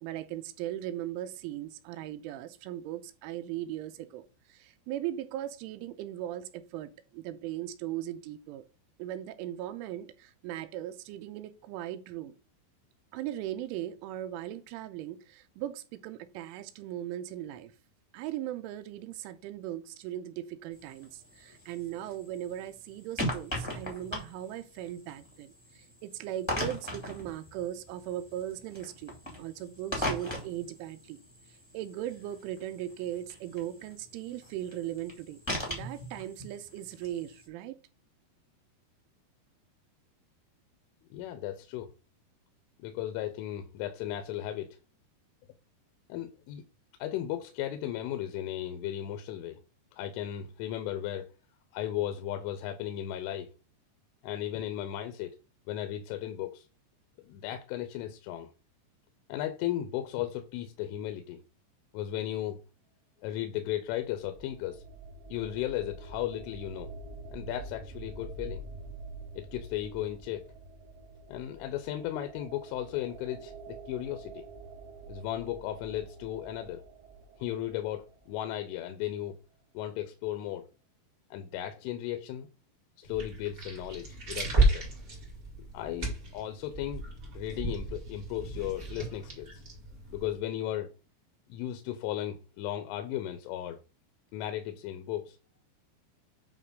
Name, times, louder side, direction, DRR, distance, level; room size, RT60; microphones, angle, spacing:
voice 1, 0.0-8.7 9.0-12.3 13.1-17.7 18.1-31.2 31.7-35.4 35.7-37.8, right 12 dB, 90° right, 3.2 m, -38 dB
sound 1, 20.7-37.5, left 1 dB, 20° left, 0.7 m, -40 dB
voice 2, 41.1-41.9 42.8-44.8 46.1-46.6 47.0-49.6 50.0-51.3 51.7-53.5 54.2-55.3 55.7-56.7 57.2-58.5 59.3-61.4 61.9-62.6 63.2-64.8 65.3-66.9 67.3-68.6 69.3-70.4 71.3-74.4 75.1-76.8 77.4-79.3 79.7-80.6 81.3-82.5 83.0-84.8 85.7-87.0 87.3-89.6 90.1-90.9 91.5-93.8 94.3-95.4, left 12 dB, 85° left, 3.2 m, -35 dB
sound 2, 63.7-78.5, right 3 dB, 65° right, 1.9 m, -47 dB
sound 3, 83.0-90.4, right 2 dB, 25° right, 1.8 m, -33 dB
9.5 x 3.3 x 5.2 m
omnidirectional pair, 5.6 m